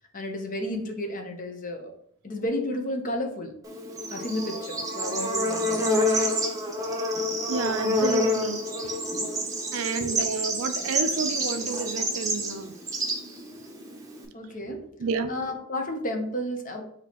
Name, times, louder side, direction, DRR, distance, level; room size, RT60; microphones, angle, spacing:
voice 1, 0.1-1.9 2.2-3.5 4.1-6.1 14.3-16.8, left 1 dB, 40° left, 0.7 m, -32 dB
Bird / Insect, 3.6-14.2, equal, 15° right, 0.8 m, -28 dB
voice 2, 7.5-9.0 9.7-12.7 15.0-15.4, right 4 dB, 70° right, 0.4 m, -30 dB
6.1 x 2.8 x 2.9 m
head